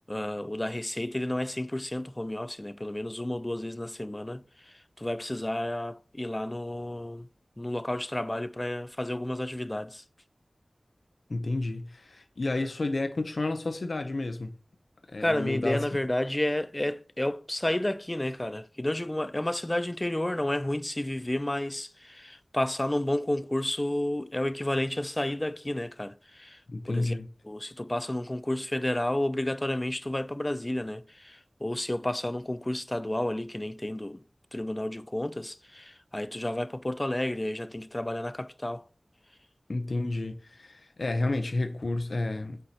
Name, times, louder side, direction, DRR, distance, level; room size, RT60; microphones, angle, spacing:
voice 1, 0.1-7.3 7.6-10.0 15.2-27.2 27.4-34.2 34.5-38.9, left 1 dB, 25° left, 0.4 m, -31 dB
voice 2, 11.3-14.5 15.1-15.8 26.7-27.3 39.7-42.6, left 2 dB, 75° left, 0.6 m, -31 dB
8.2 x 4.6 x 2.8 m
wide cardioid pair, 55°, 0 cm